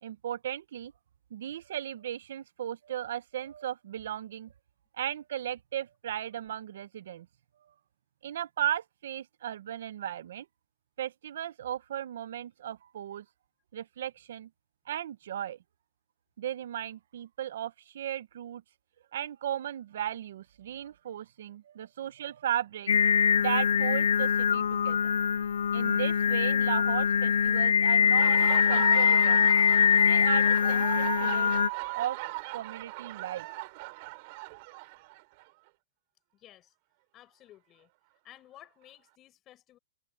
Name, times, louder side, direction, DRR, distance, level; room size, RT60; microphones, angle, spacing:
voice 1, 0.0-0.9 1.3-4.5 5.0-7.3 8.2-10.5 11.0-13.2 13.7-14.5 14.9-15.6 16.4-18.6 19.1-23.1 23.4-25.0 25.7-29.5 30.0-31.5 31.9-32.2 32.5-33.6, right 11 dB, 60° right, 1.0 m, -36 dB
Singing, 22.9-31.7, left 7 dB, 90° left, 0.4 m, -23 dB
Laughter, 27.9-35.5, right 26 dB, 40° right, 3.1 m, -38 dB
voice 2, 36.3-36.7 37.1-37.9 38.2-39.8, left 13 dB, 20° left, 7.3 m, -55 dB
hypercardioid pair, 165°, 0 cm